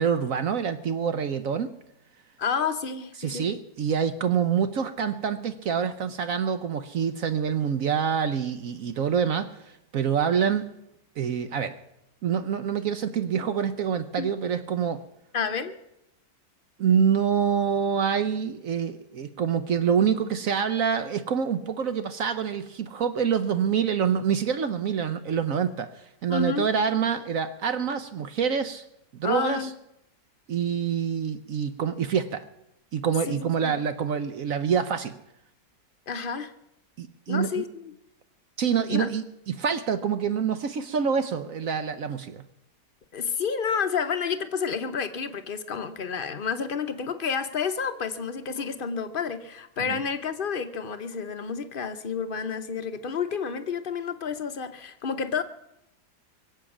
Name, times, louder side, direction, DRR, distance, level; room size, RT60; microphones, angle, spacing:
voice 1, 0.0-1.7 3.2-10.7 11.2-11.7 12.2-15.0 16.8-28.8 29.1-29.7 30.5-32.4 32.9-35.2 37.0-37.6 38.6-42.4 49.9-50.0, right 7 dB, 60° right, 10 dB, 1.0 m, -26 dB
voice 2, 2.4-3.5 14.2-14.3 15.3-15.7 26.3-26.7 29.2-29.7 33.3-33.8 36.1-36.5 37.3-37.9 38.9-39.1 43.1-55.4, left 6 dB, 45° left, 9 dB, 0.7 m, -30 dB
23.5 x 7.9 x 7.2 m, 0.84 s
omnidirectional pair, 1.8 m